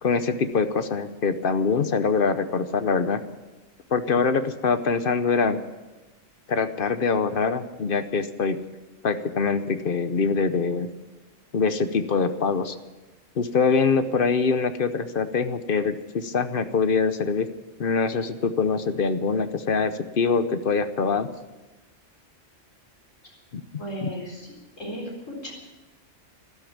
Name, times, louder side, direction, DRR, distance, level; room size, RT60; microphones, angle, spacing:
voice 1, 0.0-3.2 3.9-5.6 6.5-8.6 9.0-10.9 11.5-12.8 13.4-17.5 17.8-21.3 23.5-23.6 24.0-24.1, left 5 dB, 50° left, 11 dB, 0.9 m, -24 dB
voice 2, 23.8-24.5 24.8-25.5, right 1 dB, 85° left, -2 dB, 4.5 m, -35 dB
13.0 x 12.5 x 8.6 m, 1.1 s
omnidirectional pair, 1.3 m